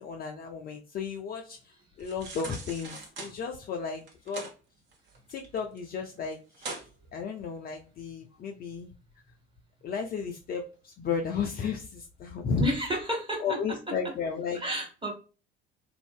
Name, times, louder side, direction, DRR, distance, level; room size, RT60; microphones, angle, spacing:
voice 1, 0.0-4.5 5.3-6.7 7.1-8.9 9.8-12.6 13.4-14.6, left 6 dB, 30° left, 2 dB, 0.4 m, -34 dB
sound 1, 2.0-3.3 4.0-4.5 4.9-5.8 6.1-6.2 6.5-6.9 7.4-7.5, right 3 dB, 40° right, 0.9 m, -41 dB
voice 2, 12.6-13.6 13.9-14.0 14.5-15.1, equal, 15° right, 1 dB, 1.3 m, -31 dB
2.4 x 2.0 x 3.5 m, 0.34 s
figure-of-eight pair, 60°, 30 cm